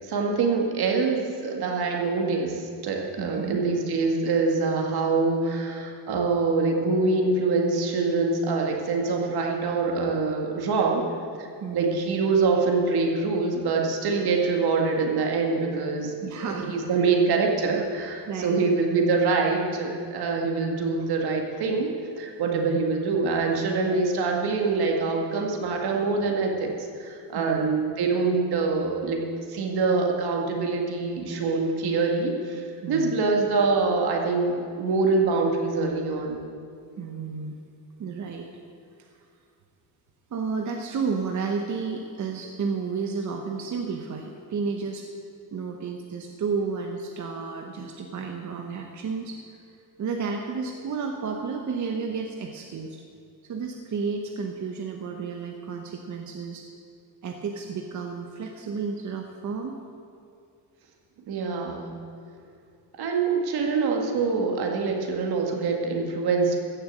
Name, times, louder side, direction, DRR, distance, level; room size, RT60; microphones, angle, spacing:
voice 1, 0.0-11.1 11.4-11.5 11.7-16.1 16.5-21.9 22.2-26.7 27.0-29.2 29.5-36.4 61.3-61.9 63.0-66.6, right 4 dB, 70° right, 1 dB, 2.1 m, -25 dB
voice 2, 3.2-3.6 11.6-12.0 16.2-17.0 18.2-18.6 22.4-22.8 27.3-27.7 32.8-33.1 37.0-37.6 38.0-38.5 39.0-39.2 40.3-45.1 45.5-49.4 50.0-53.0 53.4-56.6 57.2-59.7, right 5 dB, 45° right, 3 dB, 1.0 m, -32 dB
15.5 x 6.8 x 7.5 m, 2.4 s
cardioid pair, 135°, 39 cm